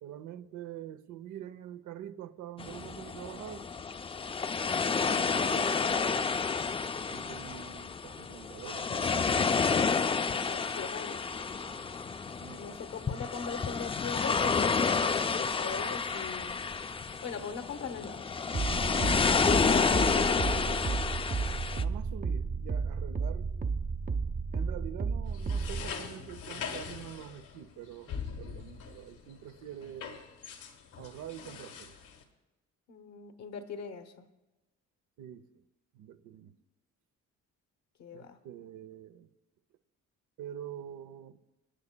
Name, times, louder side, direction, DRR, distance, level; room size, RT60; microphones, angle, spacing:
voice 1, 0.0-3.7 5.0-6.5 7.1-9.6 11.6-11.8 12.4-12.8 21.7-23.7 24.5-30.2 31.0-32.0 35.2-35.6 35.9-36.5 38.1-39.3 40.4-41.4, right 10 dB, 80° right, 0.7 m, -45 dB
sound 1, 2.6-21.8, left 5 dB, 20° left, 0.3 m, -30 dB
voice 2, 10.3-11.2 12.6-16.6 17.2-19.0 19.4-21.0 32.9-34.3 38.0-38.4, left 6 dB, 60° left, 1.0 m, -40 dB
sound 2, 18.5-25.9, right 4 dB, 30° right, 0.6 m, -32 dB
sound 3, 25.3-32.2, left 6 dB, 80° left, 1.5 m, -43 dB
25.5 x 9.8 x 2.2 m
cardioid pair, 90°, 30 cm